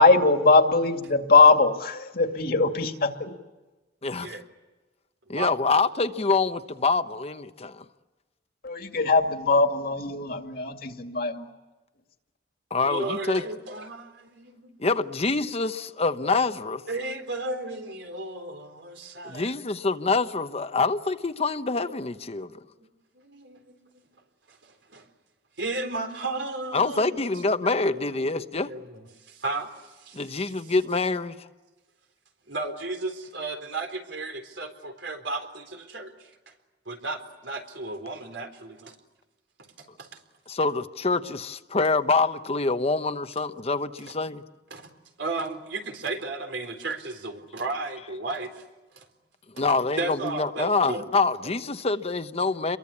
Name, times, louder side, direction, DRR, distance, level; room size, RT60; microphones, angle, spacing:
voice 1, 0.0-3.3 8.6-11.5, left 3 dB, 55° left, 5 dB, 2.3 m, -21 dB
voice 2, 4.0-4.3 5.3-7.8 12.7-13.4 14.8-16.8 19.2-22.5 26.7-28.7 30.1-31.4 40.5-44.4 49.6-52.8, left 3 dB, 35° left, 10 dB, 0.9 m, -26 dB
voice 3, 12.8-14.8 16.9-19.6 21.7-21.9 22.8-22.9 23.1-24.0 24.5-25.1 25.6-27.2 27.6-30.7 32.5-36.3 36.9-38.9 39.8-40.2 44.7-44.9 45.2-48.6 49.0-49.1 49.6-49.7 50.0-51.0 51.4-51.5, right 3 dB, 80° right, 5 dB, 3.9 m, -34 dB
28.5 x 23.0 x 8.5 m, 1.2 s
head